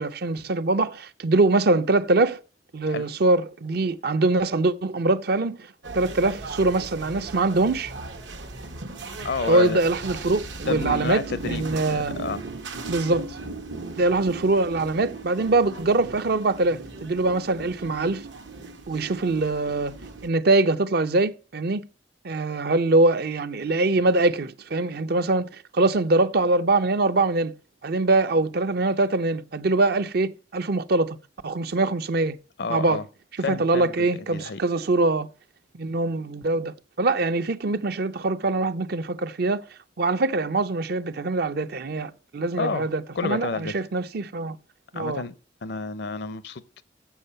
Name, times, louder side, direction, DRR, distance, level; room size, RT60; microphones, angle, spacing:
voice 1, 0.0-2.4 2.7-5.6 5.9-7.9 9.5-12.2 12.9-13.3 14.0-18.2 18.9-19.9 20.2-21.9 22.2-25.5 25.7-27.5 27.8-31.2 31.4-32.4 32.7-33.0 33.5-35.3 35.7-39.6 40.0-44.6 44.9-45.2, right 2 dB, 60° right, 0.6 m, -23 dB
sound 1, 5.8-20.3, right 3 dB, 80° right, 1.2 m, -37 dB
voice 2, 9.2-9.8 10.7-11.6 11.9-12.4 32.6-33.0 33.4-34.6 42.6-42.9 43.1-43.7 44.9-46.8, left 4 dB, 65° left, 0.6 m, -30 dB
7.3 x 7.1 x 5.5 m
head